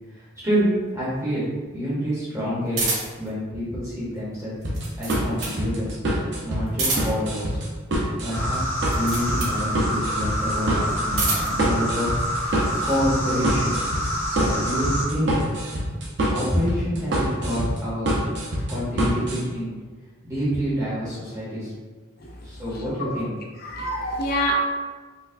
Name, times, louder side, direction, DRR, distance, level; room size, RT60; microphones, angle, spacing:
voice 1, 0.1-2.9 3.2-4.5 5.0-6.0 6.4-7.6 8.0-8.6 8.9-12.1 12.8-13.8 14.3-15.4 16.3-18.2 18.7-19.7 20.2-21.7 22.4-23.3, equal, 15° right, -9 dB, 0.8 m, -27 dB
sound 1, 2.7-3.3 4.6-5.6 6.7-7.3 8.8-9.6 10.8-11.6, right 3 dB, 75° right, 1.2 m, -28 dB
sound 2, 4.6-19.4, right 1 dB, 55° right, 0.6 m, -26 dB
sound 3, 8.3-15.0, equal, 70° left, 1.1 m, -27 dB
voice 2, 22.7-23.2 23.6-24.5, left 1 dB, 45° left, 0 dB, 0.5 m, -27 dB
4.1 x 2.2 x 2.5 m, 1.4 s
head